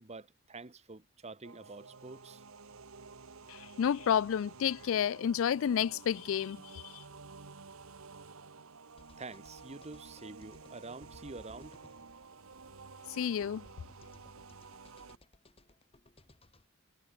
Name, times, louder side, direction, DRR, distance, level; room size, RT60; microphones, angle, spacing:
voice 1, 0.0-2.4 9.2-11.8, right 3 dB, 30° right, 1.1 m, -47 dB
sound 1, 1.4-15.2, right 4 dB, 70° right, 1.3 m, -52 dB
voice 2, 3.5-7.0 13.1-13.7, left 8 dB, 65° left, 0.3 m, -31 dB
sound 2, 9.0-16.7, left 1 dB, 25° left, 2.8 m, -61 dB
head